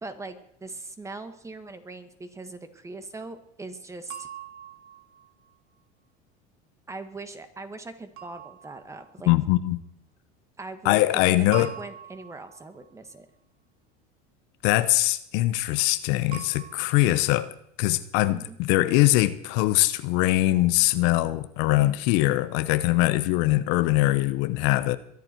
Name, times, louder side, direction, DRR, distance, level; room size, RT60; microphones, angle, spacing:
voice 1, 0.0-4.3 6.9-9.3 10.6-13.3 18.3-18.6, right 3 dB, 15° right, 1.8 m, -40 dB
sound 1, 4.1-5.6 8.2-9.3 11.5-12.9 16.3-17.1, right 9 dB, 70° right, 2.4 m, -43 dB
voice 2, 9.3-9.8 10.8-11.7 14.6-17.5 17.8-25.0, left 17 dB, 65° left, 0.9 m, -22 dB
22.5 x 11.0 x 4.6 m
supercardioid pair, 110°, 19 cm